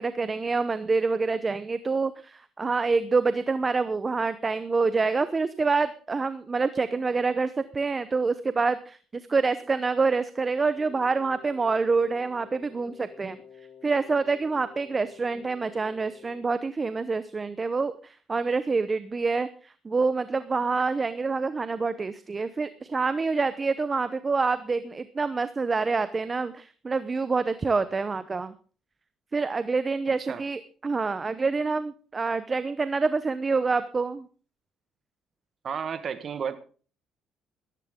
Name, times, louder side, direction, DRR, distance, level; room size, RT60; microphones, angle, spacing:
voice 1, 0.0-9.0 9.3-13.4 13.8-28.5 29.3-34.2, right 4 dB, 30° right, 13 dB, 0.8 m, -27 dB
Wind instrument woodwind instrument, 10.7-16.5, left 7 dB, 45° left, 3.3 m, -50 dB
voice 2, 35.6-36.6, right 7 dB, 50° right, 11 dB, 1.5 m, -32 dB
14.5 x 14.0 x 3.7 m, 0.39 s
cardioid pair, 95°, 0 cm